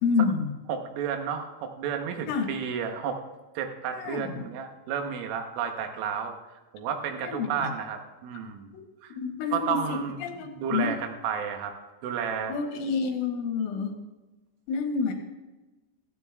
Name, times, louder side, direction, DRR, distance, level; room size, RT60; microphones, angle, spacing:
voice 1, 0.0-0.5 2.3-2.5 3.9-4.5 7.2-7.7 8.7-8.8 9.1-10.9 12.5-13.9 14.7-15.1, left 5 dB, 80° left, 3 dB, 3.8 m, -28 dB
voice 2, 0.7-3.2 3.6-6.4 6.7-8.8 9.0-9.1 9.5-11.7 12.0-12.6, right 7 dB, 85° right, 4 dB, 3.7 m, -32 dB
16.0 x 13.5 x 2.4 m, 1.2 s
omnidirectional pair, 5.7 m